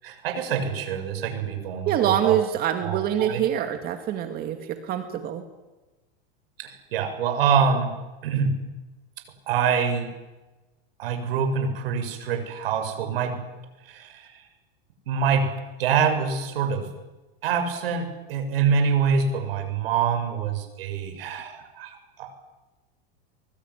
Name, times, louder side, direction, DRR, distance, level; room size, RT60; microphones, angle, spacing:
voice 1, 0.0-2.4 2.8-3.4 6.6-7.9 8.2-8.6 9.5-10.1 11.0-13.4 13.8-14.5 15.1-15.5 15.8-16.9 17.4-22.3, right 6 dB, 75° right, 6 dB, 7.3 m, -25 dB
voice 2, 1.9-5.4, right 10 dB, 30° right, 7 dB, 2.3 m, -25 dB
23.5 x 23.0 x 10.0 m, 1.1 s
supercardioid pair, 155°, 29 cm